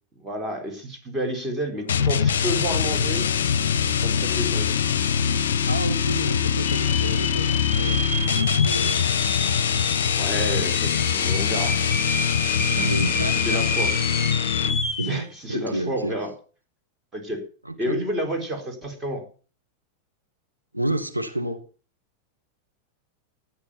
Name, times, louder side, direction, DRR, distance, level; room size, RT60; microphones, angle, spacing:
voice 1, 0.2-3.3 4.0-5.0 10.2-12.0 12.6-12.9 13.4-13.9 15.1-16.3 17.1-17.4 17.8-19.2, right 1 dB, 20° right, 3 dB, 4.0 m, -30 dB
sound 1, 1.9-15.0, left 7 dB, 60° left, 0.6 m, -23 dB
sound 2, 4.3-4.4 4.6-5.1 5.6-5.7 6.5-15.2, left 2 dB, 5° left, 2.5 m, -30 dB
voice 2, 5.7-9.1 12.8-13.6 15.0-16.2 17.6-18.0 20.7-21.6, right 1 dB, 90° right, 5 dB, 1.3 m, -30 dB
13.5 x 9.4 x 6.9 m, 0.39 s
figure-of-eight pair, 90°, 0 cm